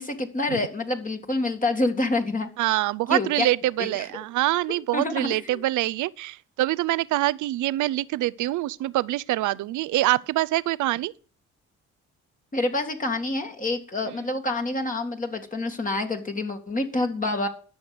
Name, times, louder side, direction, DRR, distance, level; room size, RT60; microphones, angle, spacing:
voice 1, 0.0-2.5 3.1-3.5 3.8-4.0 4.9-5.6 12.5-17.5, left 2 dB, 25° left, 2.2 m, -27 dB
voice 2, 2.6-11.1, right 16 dB, 80° right, 0.6 m, -25 dB
12.5 x 6.4 x 7.8 m
cardioid pair, 90°, 30 cm